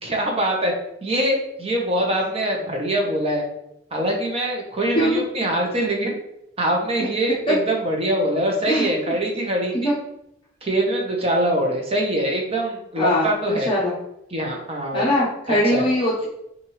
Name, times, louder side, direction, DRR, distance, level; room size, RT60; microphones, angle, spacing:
voice 1, 0.0-0.7 1.0-3.4 3.9-6.1 6.6-9.9 10.6-13.7 14.3-15.1 15.7-15.8, right 1 dB, 35° right, 0 dB, 0.9 m, -23 dB
voice 2, 13.0-14.0 14.9-16.3, left 1 dB, 30° left, -7 dB, 0.9 m, -21 dB
5.8 x 2.6 x 3.1 m, 0.82 s
head